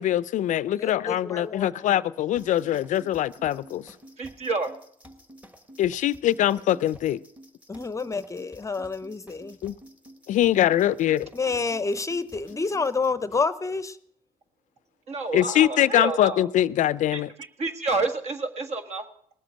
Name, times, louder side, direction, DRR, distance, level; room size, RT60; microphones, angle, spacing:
voice 1, 0.0-3.8 5.8-7.2 9.6-9.8 10.3-11.3 15.3-17.3, left 12 dB, 60° left, 0.4 m, -23 dB
voice 2, 0.8-1.7 7.7-9.6 11.3-14.0, left 4 dB, 20° left, 0.7 m, -28 dB
sound 1, 2.4-13.1, equal, 10° right, 1.5 m, -50 dB
voice 3, 4.2-4.7 15.1-16.5 17.1-17.2 17.6-19.1, right 3 dB, 50° right, 1.7 m, -29 dB
19.5 x 7.7 x 6.3 m
supercardioid pair, 80°, 14 cm